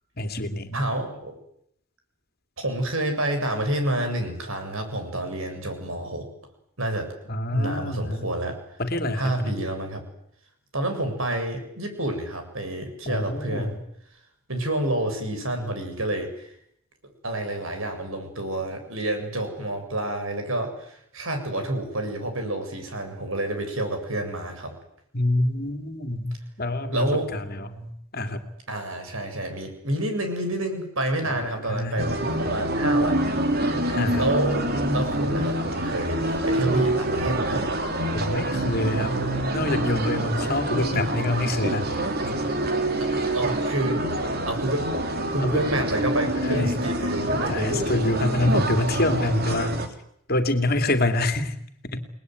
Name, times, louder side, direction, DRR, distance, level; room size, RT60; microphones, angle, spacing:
voice 1, 0.2-0.8 7.3-8.3 8.8-9.5 13.1-13.8 25.1-28.4 31.2-31.4 31.7-32.0 33.9-34.3 38.1-39.2 39.5-41.8 45.4-45.6 46.4-46.8 47.5-49.8 50.3-51.5 51.9-52.0, left 1 dB, 45° left, 8 dB, 2.9 m, -26 dB
voice 2, 0.7-1.3 2.6-6.3 6.8-7.1 7.5-8.6 9.1-10.0 10.7-13.8 14.5-16.5 17.2-24.7 26.9-27.3 28.7-33.2 34.2-34.6 34.9-36.2 36.4-37.7 43.0-44.0 44.5-44.9 45.3-47.9 48.3-48.8, right 1 dB, 70° right, 6 dB, 7.7 m, -28 dB
sound 1, 32.0-49.9, right 1 dB, 45° right, 3.5 m, -26 dB
30.0 x 20.5 x 9.7 m, 0.73 s
head